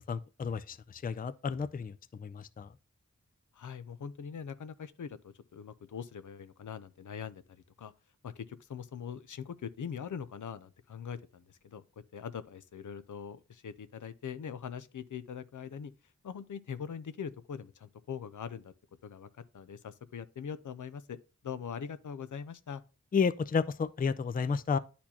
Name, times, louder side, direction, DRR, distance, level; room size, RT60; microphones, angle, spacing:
voice 1, 0.1-1.9 2.2-2.7 23.1-24.8, left 5 dB, 30° left, 0.4 m, -31 dB
voice 2, 3.5-7.9 8.2-11.8 12.1-15.9 16.2-18.7 19.0-19.3 19.5-21.2 21.4-22.8, left 7 dB, 85° left, 0.5 m, -42 dB
10.0 x 4.2 x 2.8 m
wide cardioid pair, 65°, 30 cm